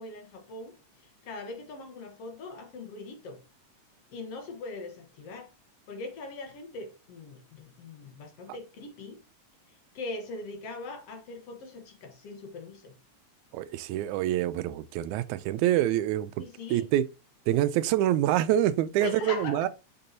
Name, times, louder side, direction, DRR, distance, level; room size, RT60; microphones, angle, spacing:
voice 1, 0.0-3.4 4.1-5.5 5.9-9.2 9.9-12.9 16.4-16.9 19.0-19.7, left 3 dB, 60° left, 2.1 m, -41 dB
voice 2, 13.5-16.3 16.7-17.1 17.5-19.7, right 12 dB, 90° right, 2.0 m, -26 dB
6.7 x 5.3 x 2.8 m
omnidirectional pair, 3.3 m